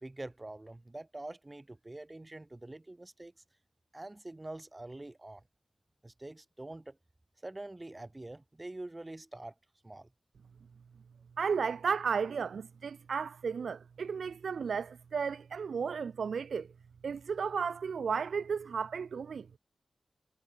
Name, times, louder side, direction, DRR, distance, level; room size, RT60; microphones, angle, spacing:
voice 1, 0.0-3.3 3.9-5.4 6.0-7.0 7.4-9.5 9.8-10.1, right 2 dB, 20° right, 1.5 m, -45 dB
voice 2, 11.4-16.7 17.0-19.6, right 6 dB, 80° right, 0.3 m, -34 dB
wide cardioid pair, 95°, 0 cm